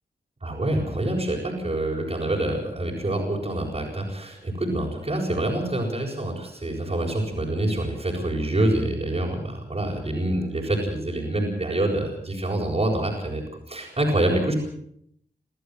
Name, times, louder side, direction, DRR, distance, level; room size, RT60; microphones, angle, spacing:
voice 1, 0.4-13.4 13.7-14.5, right 1 dB, 40° right, -3 dB, 7.3 m, -26 dB
26.0 x 14.0 x 7.9 m, 0.72 s
cardioid pair, 55°, 17 cm